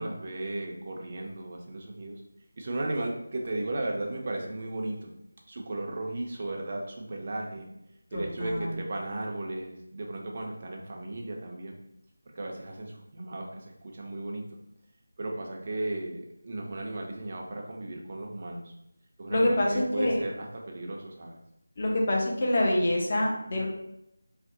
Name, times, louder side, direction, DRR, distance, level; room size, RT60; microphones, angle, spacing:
voice 1, 0.0-2.2 2.6-5.1 5.5-7.7 8.1-11.8 12.3-14.6 15.2-18.7 19.2-21.4, right 2 dB, 35° right, 0 dB, 0.4 m, -35 dB
voice 2, 8.1-8.7 19.3-20.2 21.8-23.6, left 1 dB, 35° left, -2 dB, 0.5 m, -26 dB
2.5 x 2.0 x 2.6 m, 0.80 s
figure-of-eight pair, 165°, 0 cm